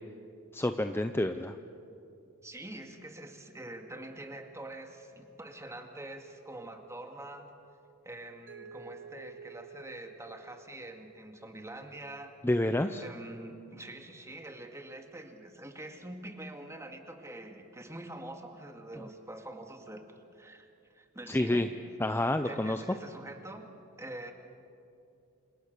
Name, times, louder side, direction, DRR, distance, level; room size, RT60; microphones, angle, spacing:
voice 1, 0.5-1.6 12.4-13.0 21.3-21.7 22.0-22.8, left 1 dB, 10° left, 8 dB, 0.6 m, -28 dB
voice 2, 2.4-7.5 8.0-12.4 13.0-21.7 22.4-23.7 24.0-24.3, right 1 dB, 15° right, 4 dB, 2.1 m, -45 dB
Mallet percussion, 8.5-11.4, right 6 dB, 60° right, 2.8 m, -51 dB
29.0 x 27.0 x 6.8 m, 2.7 s
head